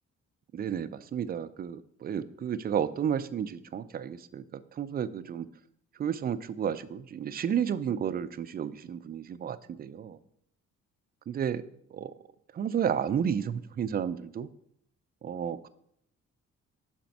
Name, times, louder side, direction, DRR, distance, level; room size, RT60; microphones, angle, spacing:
voice 1, 0.5-5.5 6.0-10.2 11.3-11.6 11.9-12.1 12.5-14.5 15.2-15.7, right 8 dB, 30° right, 14 dB, 0.4 m, -32 dB
5.0 x 4.2 x 5.9 m, 0.73 s
cardioid pair, 90°, 30 cm